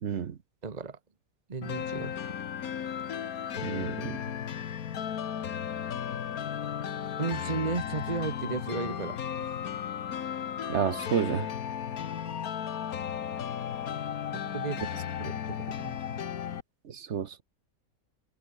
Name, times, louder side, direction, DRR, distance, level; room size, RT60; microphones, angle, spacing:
voice 1, 0.0-0.4 3.6-4.2 10.7-11.5 16.8-17.4, right 7 dB, 55° right, 1.2 m, -30 dB
voice 2, 0.6-1.0 1.5-2.1 7.2-9.7 14.3-16.0, right 4 dB, 30° right, 1.3 m, -35 dB
sound 1, 1.6-16.6, left 9 dB, 85° left, 1.6 m, -35 dB
omnidirectional pair, 1.5 m